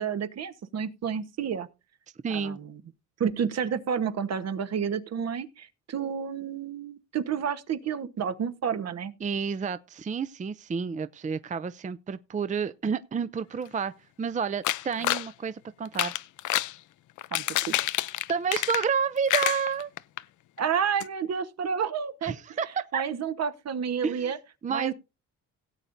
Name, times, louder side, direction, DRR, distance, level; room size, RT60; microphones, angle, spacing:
voice 1, 0.0-1.7 2.3-2.8 3.2-9.1 17.3-17.8 20.6-22.3 22.9-24.4 24.7-24.9, right 7 dB, 60° right, 1.2 m, -30 dB
voice 2, 2.2-2.6 9.2-13.9 14.2-16.1 18.3-19.9 22.2-23.0 24.0-24.3 24.6-24.9, right 6 dB, 25° right, 0.5 m, -30 dB
sound 1, 14.6-15.3 15.8-16.7 17.2-19.0 19.3-20.2 20.6-20.7 21.0-21.1, left 15 dB, 75° left, 0.6 m, -28 dB
17.0 x 8.8 x 2.6 m
cardioid pair, 90°, 30 cm